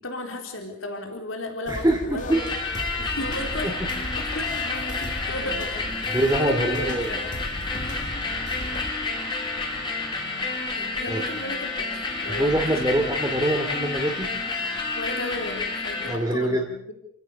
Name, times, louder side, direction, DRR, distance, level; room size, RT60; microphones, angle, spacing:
voice 1, 0.0-2.4 3.0-5.7 6.1-7.2 10.7-11.9 12.2-13.0 14.9-16.9, left 1 dB, 80° left, 3 dB, 4.0 m, -35 dB
sound 1, 1.7-8.9, left 1 dB, 40° left, 2.1 m, -37 dB
voice 2, 1.7-2.4 3.6-3.7 6.1-7.1 11.1-11.2 12.3-14.3 16.1-16.6, right 1 dB, 15° right, 0 dB, 2.6 m, -24 dB
sound 2, 2.3-16.2, left 3 dB, 25° left, 4.1 m, -30 dB
30.0 x 16.5 x 6.9 m, 0.77 s
head